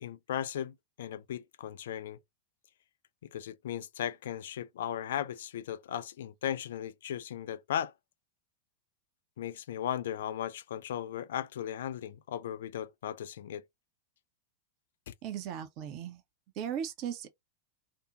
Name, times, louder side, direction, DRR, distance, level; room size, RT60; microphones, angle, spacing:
voice 1, 0.0-2.2 3.3-7.9 9.4-13.6 15.1-15.2, left 10 dB, 60° left, 0.4 m, -37 dB
voice 2, 15.2-16.2 16.6-17.3, right 9 dB, 40° right, 0.5 m, -37 dB
2.6 x 2.0 x 2.8 m
figure-of-eight pair, 90°, 0 cm